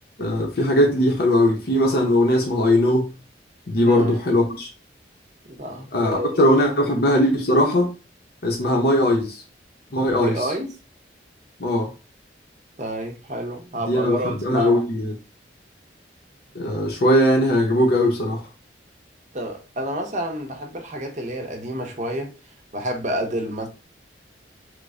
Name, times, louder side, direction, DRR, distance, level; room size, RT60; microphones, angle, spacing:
voice 1, 0.2-3.1 3.7-4.7 5.9-7.9 8.4-9.4 9.9-10.3 11.6-11.9 13.9-15.1 16.5-18.4, left 1 dB, 55° left, 0.6 m, -19 dB
voice 2, 3.8-4.2 5.4-6.3 6.6-6.7 10.0-10.7 12.8-14.8 19.3-22.3 22.7-23.7, right 1 dB, 40° right, 0.7 m, -29 dB
3.1 x 2.1 x 3.6 m
head